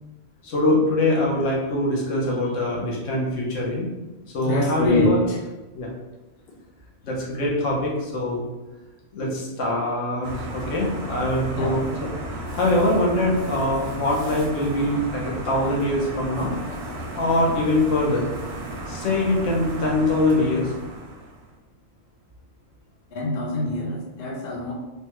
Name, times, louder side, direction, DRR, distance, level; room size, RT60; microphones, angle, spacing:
voice 1, 0.4-3.9 4.3-5.2 5.7-5.9 7.0-8.5 9.1-12.1 12.5-16.5 17.1-18.3 18.9-20.7, left 1 dB, 75° left, -3 dB, 1.1 m, -23 dB
voice 2, 4.4-5.4 11.6-11.8 23.1-24.7, left 1 dB, 60° left, -2 dB, 0.7 m, -25 dB
sound 1, 10.2-21.5, right 1 dB, 65° right, 0.8 m, -34 dB
3.3 x 2.1 x 2.9 m, 1.1 s
omnidirectional pair, 1.3 m